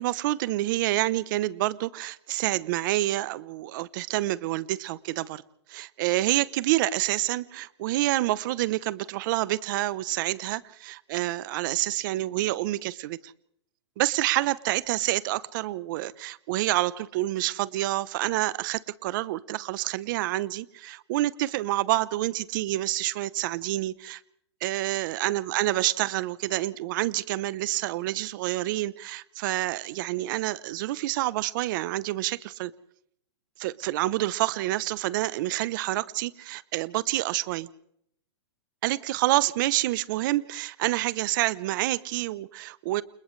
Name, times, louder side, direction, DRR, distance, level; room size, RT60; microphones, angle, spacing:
voice 1, 0.0-5.4 5.7-13.3 14.0-24.2 24.6-32.7 33.6-37.7 38.8-43.0, right 16 dB, 45° right, 18 dB, 0.8 m, -28 dB
29.0 x 28.0 x 3.3 m, 0.69 s
hypercardioid pair, 150°, 15 cm